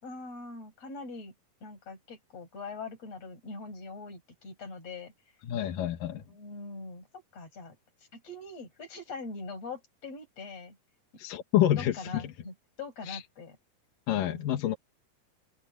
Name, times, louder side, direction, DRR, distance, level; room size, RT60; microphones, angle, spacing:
voice 1, 0.0-1.3 1.6-5.1 6.3-7.8 8.1-10.8 11.8-13.6 14.1-14.6, left 3 dB, 45° left, 7.7 m, -42 dB
voice 2, 5.5-6.2 11.2-12.2 13.1-13.2 14.1-14.8, left 12 dB, 80° left, 3.0 m, -28 dB
omnidirectional pair, 3.9 m